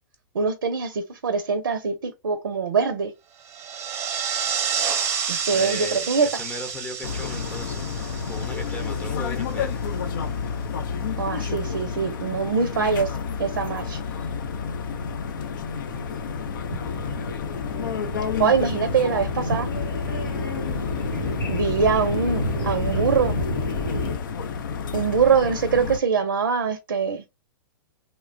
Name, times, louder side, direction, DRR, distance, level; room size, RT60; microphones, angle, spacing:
voice 1, 0.3-3.1 5.3-6.3 11.2-14.0 18.4-19.7 21.5-23.4 24.9-27.2, right 6 dB, 80° right, 0.5 m, -23 dB
sound 1, 3.4-9.3, right 7 dB, 25° right, 0.6 m, -29 dB
voice 2, 5.4-7.9 8.2-9.7, left 2 dB, 15° left, 0.7 m, -37 dB
sound 2, 7.0-26.0, left 6 dB, 65° left, 0.5 m, -30 dB
sound 3, 14.7-24.2, left 2 dB, 85° left, 0.9 m, -30 dB
3.0 x 2.2 x 2.5 m
hypercardioid pair, 110°, 11 cm